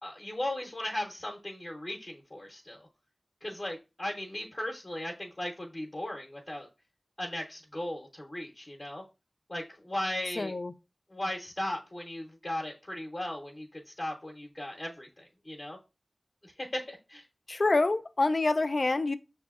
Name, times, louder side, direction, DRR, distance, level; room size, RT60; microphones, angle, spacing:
voice 1, 0.0-2.9 3.4-6.7 7.2-9.0 9.5-10.5 11.1-15.8 16.4-17.3, left 1 dB, 40° left, 0.7 m, -37 dB
voice 2, 10.4-10.7 17.5-19.2, left 2 dB, 55° left, 0.3 m, -26 dB
5.9 x 2.6 x 2.4 m
wide cardioid pair, 55°, 0 cm